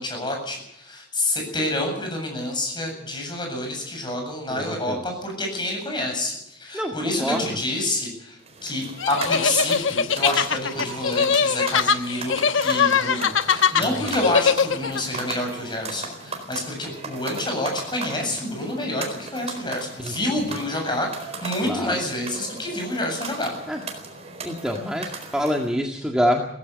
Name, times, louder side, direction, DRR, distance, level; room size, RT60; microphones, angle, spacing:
voice 1, 0.0-12.4 12.6-23.5, left 1 dB, 25° left, 2 dB, 7.7 m, -28 dB
voice 2, 4.5-5.0 6.7-7.5 13.8-14.2 20.0-20.6 21.6-22.0 23.7-23.8 24.4-26.5, equal, 5° right, 1 dB, 1.8 m, -27 dB
sound 1, 8.4-25.7, right 4 dB, 35° right, 4.2 m, -37 dB
sound 2, 9.0-15.0, left 6 dB, 85° left, 1.1 m, -21 dB
17.5 x 16.0 x 9.4 m, 0.79 s
head